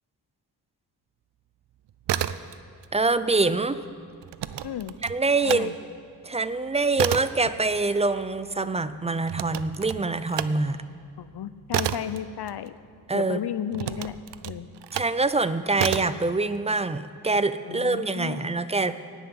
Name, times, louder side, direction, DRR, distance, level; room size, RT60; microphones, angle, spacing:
sound 1, 1.9-2.9 3.2-5.7 6.1-13.1 13.7-15.2 15.7-16.2, right 11 dB, 90° right, 0.5 m, -31 dB
voice 1, 2.9-3.8 5.0-5.7 6.2-10.8 13.1-13.4 14.9-19.0, right 3 dB, 15° right, 13 dB, 0.4 m, -25 dB
voice 2, 4.6-4.9 5.5-5.8 11.2-12.7 13.1-14.2 14.4-14.7 17.6-18.6, left 9 dB, 70° left, 14 dB, 0.6 m, -33 dB
17.0 x 5.8 x 9.4 m, 2.2 s
wide cardioid pair, 110°, 41 cm